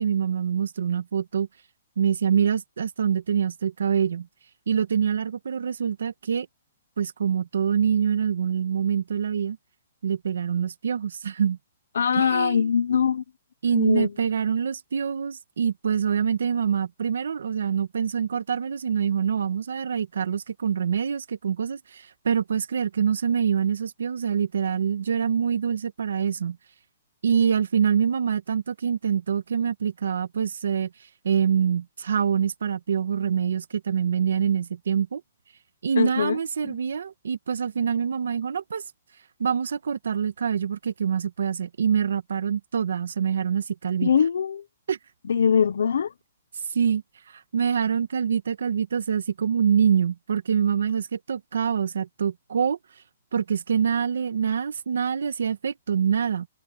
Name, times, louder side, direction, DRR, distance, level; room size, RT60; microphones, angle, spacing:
voice 1, 0.0-1.5 2.0-4.3 4.7-6.5 7.0-9.6 10.0-11.6 12.1-12.7 13.6-26.6 27.2-30.9 31.2-35.2 35.8-38.8 39.4-44.1 44.9-45.0 46.7-47.0 47.3-52.8 53.3-56.5, right 7 dB, 85° right, 1.5 m, -25 dB
voice 2, 11.9-13.2 13.7-14.1 36.0-36.4 36.6-36.8 44.0-44.6 45.3-46.1, left 7 dB, 75° left, 1.0 m, -22 dB
hypercardioid pair, 175°, 0 cm